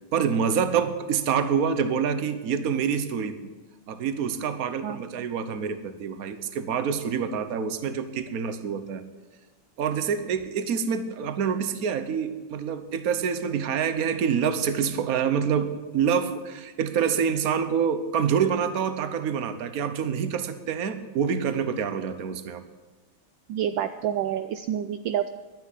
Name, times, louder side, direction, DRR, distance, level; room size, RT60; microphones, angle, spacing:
voice 1, 0.1-3.5 3.9-9.0 9.8-22.6, right 7 dB, 50° right, 11 dB, 1.3 m, -26 dB
voice 2, 23.5-25.3, right 10 dB, 75° right, 9 dB, 1.3 m, -28 dB
12.0 x 9.2 x 9.9 m, 1.2 s
omnidirectional pair, 2.3 m